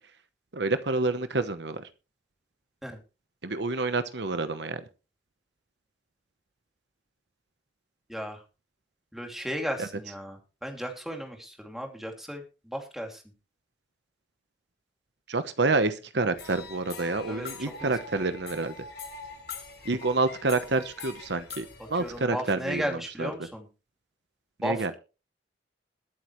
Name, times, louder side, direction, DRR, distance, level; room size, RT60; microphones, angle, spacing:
voice 1, 0.5-1.8 3.4-4.8 9.8-9.9 15.3-18.7 19.8-23.3 24.6-24.9, right 3 dB, 65° right, 10 dB, 1.0 m, -28 dB
voice 2, 9.1-13.2 17.3-17.5 17.8-17.9 22.0-23.7 24.6-24.9, equal, ahead, 2 dB, 2.7 m, -35 dB
sound 1, 16.3-22.3, left 4 dB, 60° left, 6.8 m, -43 dB
22.0 x 8.0 x 3.2 m, 0.32 s
head